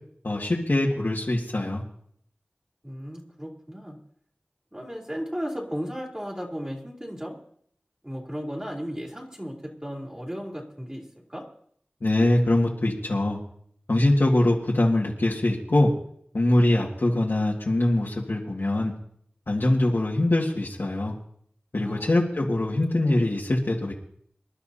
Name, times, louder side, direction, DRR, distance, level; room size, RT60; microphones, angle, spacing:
voice 1, 0.2-1.8 12.0-13.4 13.9-15.9 16.3-18.9 19.5-21.1 21.7-23.9, left 1 dB, 75° left, -4 dB, 2.0 m, -23 dB
voice 2, 2.8-4.0 4.7-7.3 8.0-11.0 11.3-11.4 21.8-22.4 23.0-23.2, equal, 20° right, -3 dB, 3.4 m, -35 dB
26.5 x 12.0 x 2.8 m, 0.65 s
wide cardioid pair, 50°, 4 cm